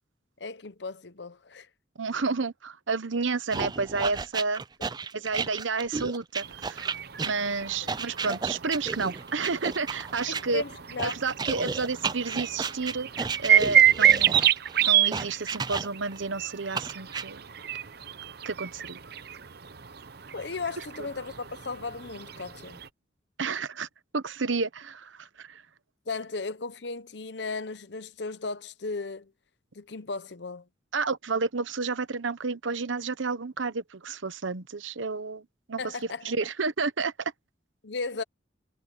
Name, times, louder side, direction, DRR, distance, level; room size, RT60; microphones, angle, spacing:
voice 1, 0.4-1.7 7.8-8.0 10.3-11.2 20.3-22.8 26.1-29.3 29.7-30.6 35.8-36.3 37.8-38.2, left 3 dB, 65° left, 0.9 m, -36 dB
voice 2, 2.0-4.6 5.1-6.8 7.2-10.6 11.0-13.1 13.4-14.4 14.8-17.4 18.4-19.0 23.4-23.9 24.1-25.6 30.9-35.8 36.2-37.3, right 4 dB, 90° right, 1.0 m, -30 dB
sound 1, 3.5-10.4 11.0-16.2 16.7-17.2, right 4 dB, 20° right, 0.4 m, -33 dB
sound 2, 6.4-22.9, right 10 dB, 55° right, 0.8 m, -28 dB
head